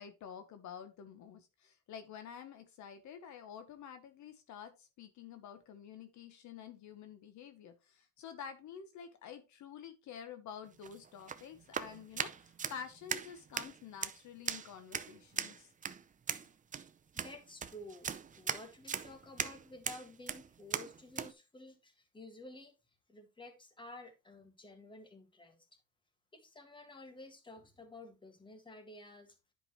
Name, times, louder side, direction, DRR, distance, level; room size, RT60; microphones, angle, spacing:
voice 1, 0.0-15.7, left 7 dB, 65° left, 9 dB, 1.1 m, -49 dB
sound 1, 10.7-21.3, right 7 dB, 25° right, 0.6 m, -40 dB
voice 2, 17.1-22.7 23.1-25.7 26.3-29.4, left 2 dB, 15° left, 6 dB, 1.8 m, -52 dB
10.0 x 5.3 x 3.0 m, 0.27 s
cardioid pair, 110°, 32 cm